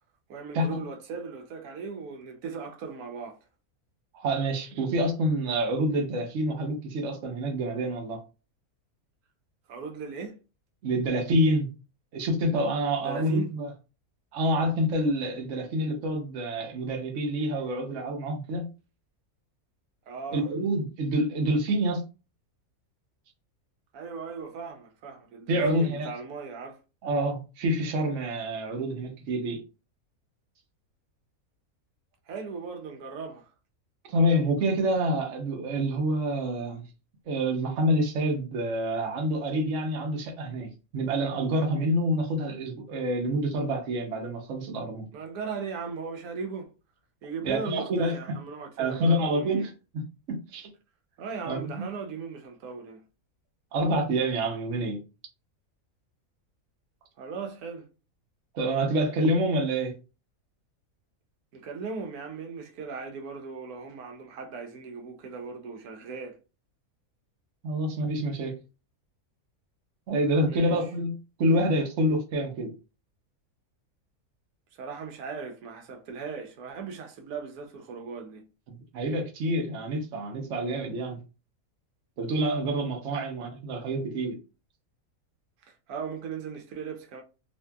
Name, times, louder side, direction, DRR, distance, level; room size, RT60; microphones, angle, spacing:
voice 1, 0.3-3.4 9.7-10.4 13.0-13.5 20.1-20.5 23.9-26.8 32.3-33.5 45.1-46.7 47.2-49.7 51.2-53.0 57.2-57.9 61.5-66.4 70.5-70.8 74.8-78.4 83.1-83.3 85.6-87.2, right 5 dB, 85° right, 1.1 m, -38 dB
voice 2, 4.1-8.2 10.8-11.7 12.1-13.7 14.3-18.7 20.3-22.0 25.5-26.1 27.0-29.6 34.1-36.9 37.3-45.1 47.4-48.2 48.8-50.7 51.4-51.9 53.7-55.0 58.5-59.9 67.6-68.6 70.1-72.7 78.7-81.2 82.2-84.4, right 1 dB, 60° right, 1.0 m, -27 dB
2.7 x 2.5 x 2.2 m
omnidirectional pair, 1.5 m